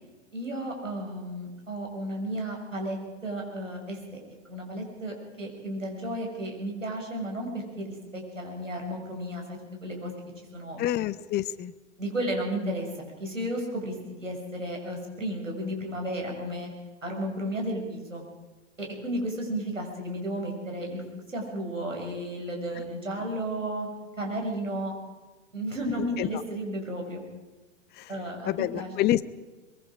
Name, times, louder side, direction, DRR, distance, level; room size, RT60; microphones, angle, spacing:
voice 1, 0.3-4.2 4.5-10.1 10.5-11.0 12.0-16.7 17.0-18.2 18.8-21.0 21.3-23.9 24.2-24.9 25.5-27.2 28.1-28.9, right 1 dB, 90° right, 0 dB, 6.5 m, -33 dB
voice 2, 10.8-11.7 26.2-26.4 28.0-28.1 28.5-29.3, left 13 dB, 25° left, 16 dB, 0.9 m, -27 dB
23.5 x 22.5 x 5.1 m, 1.2 s
figure-of-eight pair, 105°, 37 cm